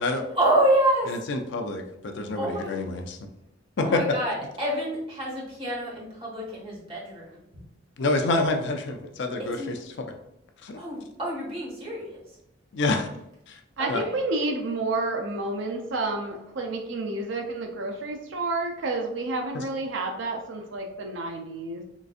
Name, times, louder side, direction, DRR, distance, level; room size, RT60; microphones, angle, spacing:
voice 1, 0.4-1.1 2.4-2.7 3.8-7.2 9.6-9.7 10.7-12.2 13.8-13.9, right 1 dB, 30° right, 1.1 m, -27 dB
voice 2, 1.1-3.2 3.8-4.0 8.0-10.1 10.6-10.8 12.7-13.1 13.5-13.6 13.9-14.0 19.5-19.6, left 2 dB, 65° left, 0.4 m, -27 dB
voice 3, 13.8-21.8, right 2 dB, 70° right, 0.5 m, -30 dB
3.8 x 2.5 x 2.4 m
head